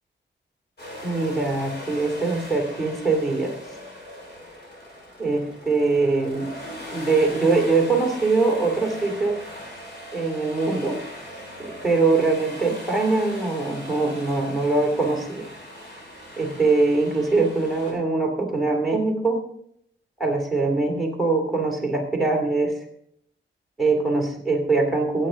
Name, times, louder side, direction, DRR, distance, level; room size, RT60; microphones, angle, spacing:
sound 1, 0.8-17.9, equal, 60° left, 5.7 m, -39 dB
voice 1, 1.0-3.5 5.2-6.5 6.9-9.4 10.1-11.0 11.6-15.5 16.4-19.4 20.2-22.8 23.8-25.3, right 3 dB, ahead, 2 dB, 2.5 m, -22 dB
16.0 x 8.3 x 3.7 m, 0.68 s
wide cardioid pair, 165°, 20 cm